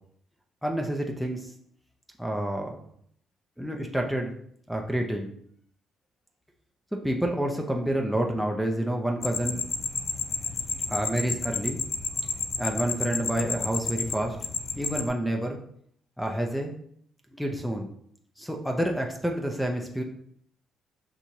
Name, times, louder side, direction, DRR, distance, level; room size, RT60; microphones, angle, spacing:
voice 1, 0.6-1.5 2.2-2.8 3.6-4.3 4.7-5.3 7.0-9.7 10.9-11.8 12.6-14.4 14.8-15.6 16.2-16.7 17.3-17.9 18.4-20.0, right 1 dB, ahead, 2 dB, 0.6 m, -28 dB
sound 1, 9.2-15.1, left 4 dB, 50° left, 0.4 m, -31 dB
6.0 x 2.6 x 2.8 m, 0.66 s
cardioid pair, 90°, 0 cm